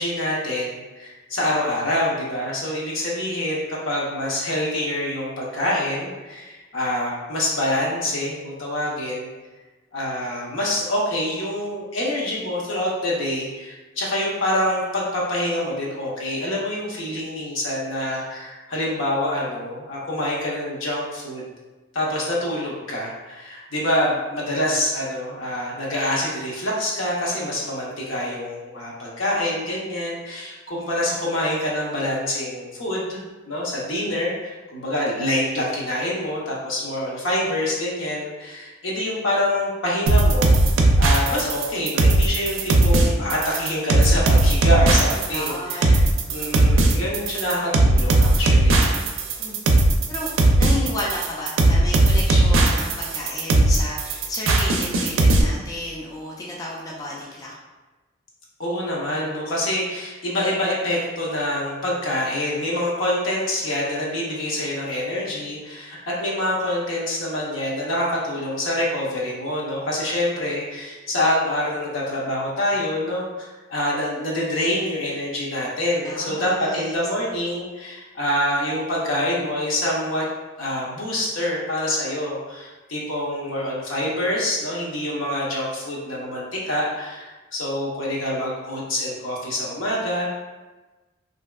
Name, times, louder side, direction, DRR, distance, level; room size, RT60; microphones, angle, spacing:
voice 1, 0.0-9.3 9.9-21.4 21.9-33.2 33.5-40.5 41.0-49.0 58.6-80.3 80.6-90.3, left 1 dB, 80° left, -5 dB, 0.8 m, -26 dB
sound 1, 40.1-55.4, right 2 dB, 75° right, 0.4 m, -17 dB
voice 2, 45.3-45.9 49.4-49.6 50.1-57.5 76.0-76.9, left 1 dB, 20° left, -4 dB, 0.3 m, -32 dB
3.3 x 2.7 x 2.2 m, 1.2 s
head